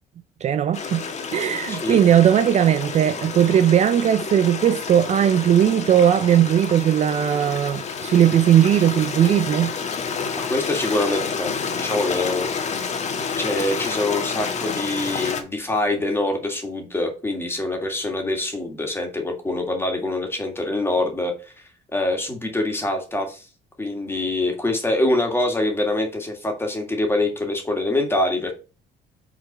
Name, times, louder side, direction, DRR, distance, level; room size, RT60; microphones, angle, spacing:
voice 1, 0.4-1.0 1.3-9.7, right 10 dB, 40° right, 0.4 m, -18 dB
Stream, 0.7-15.4, left 5 dB, 45° left, 1.3 m, -29 dB
voice 2, 1.7-2.0 10.5-12.5 13.4-21.3 21.9-23.5 23.8-28.5, left 2 dB, 15° left, 2.0 m, -24 dB
5.9 x 3.8 x 5.3 m
cardioid pair, 110°, 17 cm